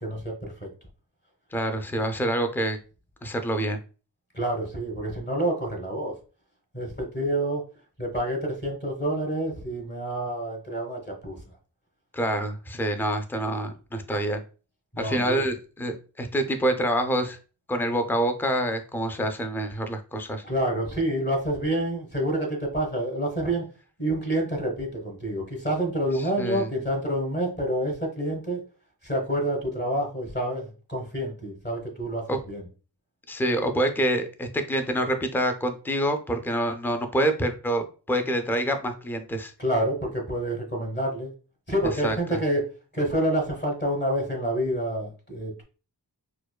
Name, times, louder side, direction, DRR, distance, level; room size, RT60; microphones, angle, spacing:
voice 1, 0.0-0.7 4.3-6.2 6.7-7.6 8.0-11.4 14.9-15.4 20.4-23.6 24.0-28.6 29.0-32.6 39.6-41.3 41.7-45.6, right 1 dB, 25° left, 1 dB, 1.1 m, -28 dB
voice 2, 1.5-2.8 3.2-3.8 12.1-14.4 15.0-17.4 17.7-20.4 26.4-26.7 32.3-32.4 33.3-39.5 42.0-42.4, right 1 dB, 5° left, 7 dB, 0.3 m, -26 dB
4.5 x 2.2 x 2.2 m, 0.36 s
wide cardioid pair, 90°, 43 cm